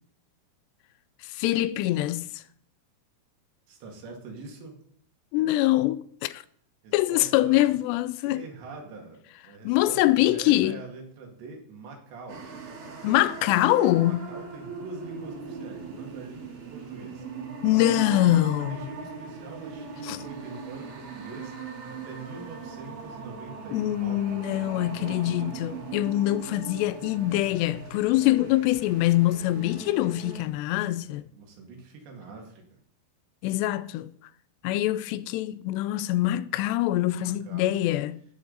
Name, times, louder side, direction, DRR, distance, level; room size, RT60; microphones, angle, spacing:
voice 1, 1.2-2.4 5.3-6.4 6.9-8.4 9.6-10.8 13.0-14.3 17.6-18.8 20.0-20.2 23.7-31.3 33.4-34.1 34.6-38.2, left 15 dB, 85° left, 2.7 m, -24 dB
voice 2, 3.7-4.8 6.8-7.7 8.2-12.5 14.0-17.3 17.7-24.4 31.0-32.6 37.2-37.7, right 3 dB, 85° right, 4.4 m, -44 dB
sound 1, 12.3-30.5, right 4 dB, 50° right, 2.8 m, -40 dB
18.5 x 6.9 x 4.0 m
omnidirectional pair, 4.9 m